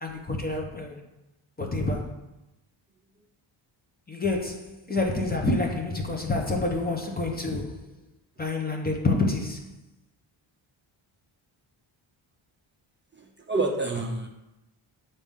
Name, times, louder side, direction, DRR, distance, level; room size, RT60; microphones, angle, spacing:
voice 1, 0.0-1.0 1.6-2.2 4.1-7.8 8.4-9.7, left 2 dB, 20° left, 0.8 m, -28 dB
voice 2, 13.1-14.3, right 2 dB, 25° right, 0.6 m, -28 dB
8.8 x 4.2 x 3.6 m
wide cardioid pair, 150°, 50 cm